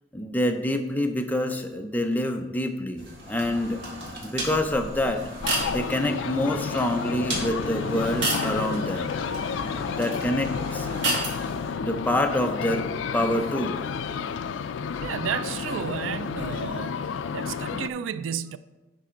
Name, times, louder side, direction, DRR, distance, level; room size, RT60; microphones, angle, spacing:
voice 1, 0.1-3.8 4.2-5.3 5.7-9.2 10.0-10.9 11.5-12.9 13.1-13.8, left 1 dB, 10° left, 0.5 m, -26 dB
sound 1, 3.0-11.7, right 2 dB, 65° right, 2.1 m, -33 dB
sound 2, 5.1-14.6, left 1 dB, 30° left, 2.6 m, -47 dB
sound 3, 5.4-17.9, left 6 dB, 70° left, 0.3 m, -31 dB
voice 2, 15.0-17.0 17.3-18.6, right 8 dB, 80° right, 0.3 m, -32 dB
10.0 x 4.2 x 5.0 m
head